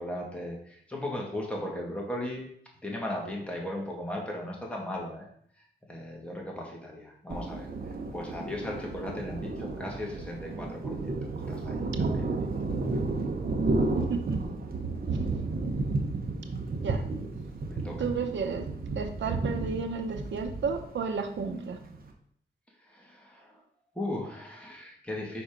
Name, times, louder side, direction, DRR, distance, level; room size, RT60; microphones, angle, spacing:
voice 1, 0.0-2.4 2.8-5.3 5.6-12.6 17.6-18.0 22.8-23.6 23.9-25.4, left 1 dB, 5° left, -2 dB, 2.0 m, -37 dB
Thunder, 7.3-22.1, right 3 dB, 55° right, 1.0 m, -32 dB
voice 2, 14.0-14.4 16.8-17.1 18.0-18.6 19.0-21.8, right 5 dB, 90° right, 4 dB, 0.7 m, -32 dB
5.3 x 4.3 x 5.2 m, 0.64 s
wide cardioid pair, 85°, 18 cm